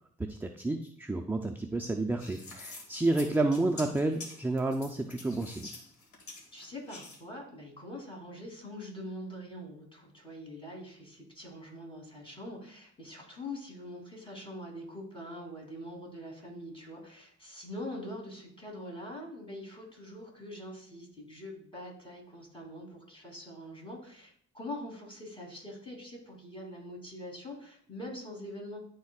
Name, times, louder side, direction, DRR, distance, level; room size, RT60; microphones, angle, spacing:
voice 1, 0.3-5.7, right 2 dB, 5° right, 4 dB, 0.4 m, -30 dB
sound 1, 2.2-7.2, left 3 dB, 70° left, 2.1 m, -47 dB
voice 2, 6.5-28.8, left 1 dB, 15° left, -1 dB, 2.9 m, -44 dB
11.0 x 4.4 x 2.4 m, 0.64 s
cardioid pair, 90°, 30 cm